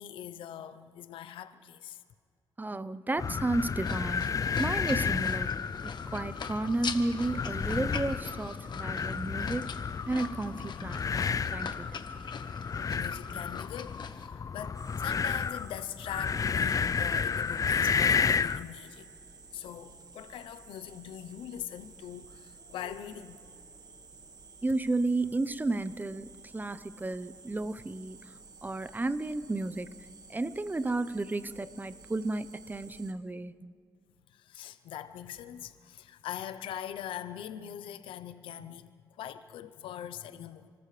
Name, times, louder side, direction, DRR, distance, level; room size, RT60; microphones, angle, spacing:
voice 1, 0.0-2.0 12.9-19.1 19.5-23.4 34.3-40.7, left 10 dB, 85° left, 0.7 m, -42 dB
voice 2, 2.6-4.3 4.6-5.5 5.8-11.9 12.2-12.3 24.6-28.2 28.6-29.9 30.3-33.7, right 2 dB, 20° right, 0.7 m, -33 dB
sound 1, 3.2-18.7, left 6 dB, 45° left, 0.4 m, -31 dB
sound 2, 3.8-14.3, left 6 dB, 60° left, 1.3 m, -43 dB
sound 3, 14.7-33.1, right 4 dB, 50° right, 1.7 m, -53 dB
29.5 x 14.0 x 3.3 m
cardioid pair, 60°, 9 cm